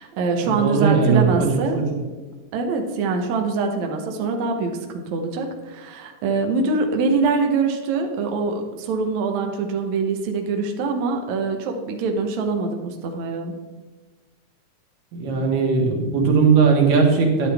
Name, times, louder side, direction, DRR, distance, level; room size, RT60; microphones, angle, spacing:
voice 1, 0.0-1.8 2.5-13.5, right 4 dB, 70° right, 3 dB, 2.1 m, -24 dB
voice 2, 0.6-1.5 1.7-1.8 15.1-17.5, right 5 dB, 90° right, 0 dB, 3.2 m, -18 dB
10.5 x 9.6 x 3.4 m, 1.3 s
omnidirectional pair, 3.7 m